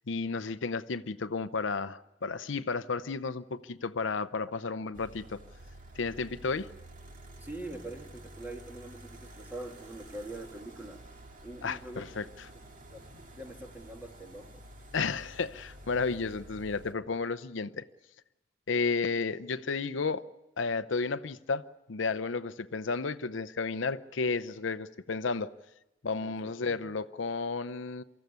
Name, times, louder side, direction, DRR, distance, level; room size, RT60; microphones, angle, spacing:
voice 1, 0.1-5.4 6.0-6.7 11.6-12.3 14.9-17.9 18.7-20.2 20.6-25.5 26.0-28.0, left 4 dB, 75° left, 0.7 m, -32 dB
sound 1, 4.9-16.9, right 1 dB, 45° right, 2.0 m, -50 dB
voice 2, 7.4-11.0 11.4-12.1 12.9-13.0 13.3-14.5 26.2-26.8, right 1 dB, 10° right, 1.9 m, -43 dB
24.5 x 14.0 x 9.4 m
head